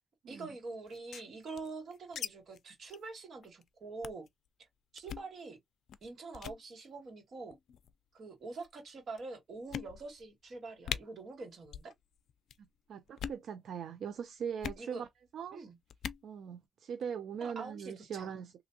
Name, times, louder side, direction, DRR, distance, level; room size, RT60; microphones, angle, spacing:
voice 1, 0.3-4.3 4.9-5.6 6.0-7.6 8.1-11.9 14.8-15.0 15.5-15.8 17.4-18.3, right 3 dB, 50° right, 1.8 m, -45 dB
sound 1, 0.9-2.3 2.5-2.6 2.9-3.1 3.4-3.6 4.0-4.3 5.0-5.3 5.9-6.1 6.3-6.6 7.5-7.9 8.6-8.7 9.2-9.3 9.7-10.3 10.5-10.6 10.8-11.0 11.7-11.9 12.2-12.6 13.1-13.4 14.6-14.8 15.9-16.2, left 8 dB, 75° left, 0.4 m, -41 dB
voice 2, 12.6-15.1 15.3-15.6 16.2-18.5, right 7 dB, 70° right, 0.4 m, -41 dB
3.4 x 2.7 x 2.7 m
wide cardioid pair, 145°, 0 cm